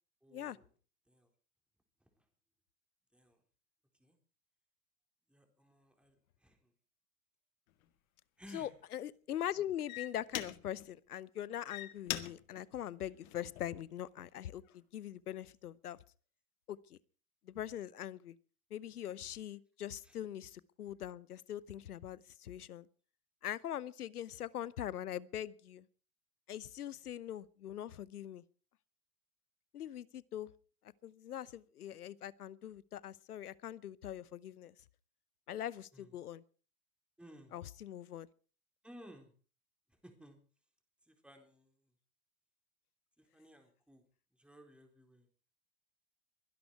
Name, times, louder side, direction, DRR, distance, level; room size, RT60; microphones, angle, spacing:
voice 1, 0.2-0.7 1.1-1.3 2.0-2.2 3.1-3.4 4.0-4.2 5.3-6.7 8.4-8.9 20.0-20.2 35.9-36.2 37.2-37.6 38.8-39.3 39.9-40.4 41.0-41.9 43.2-44.0 44.3-45.3, equal, ahead, 4.0 m, -58 dB
sound 1, 7.7-7.9 8.5-8.8 9.5-9.6 9.9-10.9 11.5-13.9 14.4-14.8, left 14 dB, 65° left, 1.9 m, -43 dB
voice 2, 8.5-16.0 16.7-17.0 17.4-18.4 18.7-22.9 23.4-25.9 26.5-28.4 29.7-30.5 30.8-34.7 35.5-36.4 37.5-38.3, left 11 dB, 85° left, 0.9 m, -42 dB
22.5 x 11.5 x 4.8 m
hypercardioid pair, 95°, 44 cm